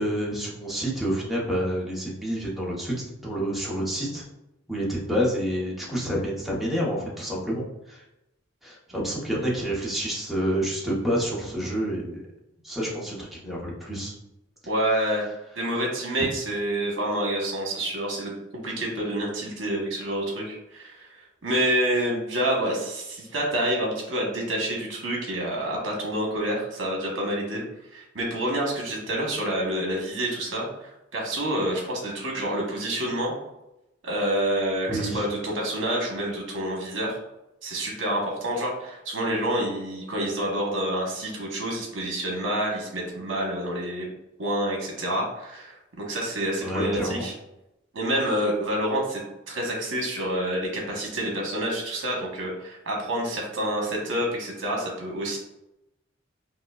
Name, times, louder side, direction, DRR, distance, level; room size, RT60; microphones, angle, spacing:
voice 1, 0.0-2.9 3.2-4.2 4.7-8.0 8.6-12.2 12.6-14.1 34.9-35.3 46.6-47.3, equal, ahead, -5 dB, 0.8 m, -28 dB
voice 2, 14.7-15.2 15.5-18.4 18.6-21.1 21.4-27.6 27.9-33.3 34.0-37.2 37.6-44.1 44.4-47.3 47.9-49.2 49.5-55.4, right 1 dB, 70° right, -1 dB, 1.1 m, -28 dB
4.8 x 2.2 x 2.3 m, 0.89 s
head